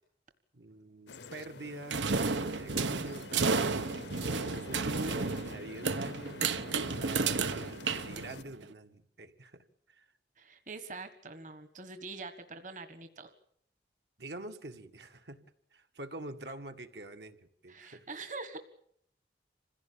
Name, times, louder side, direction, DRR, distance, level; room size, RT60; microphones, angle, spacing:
voice 1, 0.5-3.8 4.4-6.4 6.9-10.1 14.2-15.4 15.7-17.4 17.6-18.1, right 2 dB, 70° right, 6 dB, 1.9 m, -46 dB
sound 1, 1.1-8.4, left 3 dB, 75° left, 0.9 m, -49 dB
sound 2, 1.9-8.6, right 4 dB, 85° right, 1.2 m, -32 dB
voice 2, 10.4-13.3 17.7-18.6, right 3 dB, 45° right, 9 dB, 1.6 m, -44 dB
26.5 x 16.0 x 8.7 m, 0.68 s
head